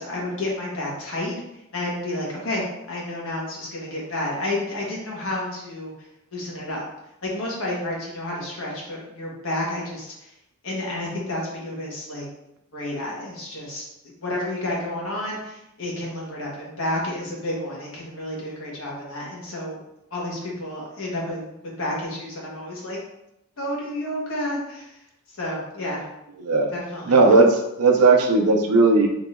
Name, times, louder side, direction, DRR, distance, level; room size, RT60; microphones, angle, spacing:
voice 1, 0.0-1.3 1.7-5.9 6.3-6.8 7.2-10.3 10.6-12.2 12.7-13.8 14.2-19.8 20.1-21.5 21.8-23.0 23.6-24.9 25.4-26.0 26.7-27.2, left 1 dB, 65° left, -4 dB, 1.4 m, -30 dB
voice 2, 26.4-26.7 27.1-29.1, right 3 dB, 85° right, 4 dB, 0.6 m, -17 dB
3.9 x 2.9 x 3.7 m, 0.86 s
head